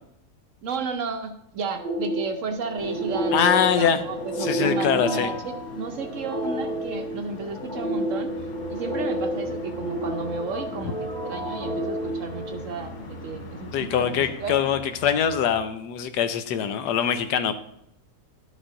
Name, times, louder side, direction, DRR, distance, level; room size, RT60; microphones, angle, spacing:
voice 1, 0.6-14.6, right 4 dB, 60° right, 7 dB, 0.9 m, -33 dB
sound 1, 1.8-13.1, right 1 dB, 5° left, 1.4 m, -30 dB
sound 2, 2.8-14.8, left 4 dB, 65° left, 1.2 m, -43 dB
voice 2, 3.3-4.0 4.4-5.3 13.7-17.5, left 8 dB, 90° left, 10 dB, 1.3 m, -23 dB
sound 3, 8.3-15.6, right 2 dB, 45° left, 0.6 m, -43 dB
11.5 x 5.4 x 3.7 m, 0.76 s
omnidirectional pair, 1.7 m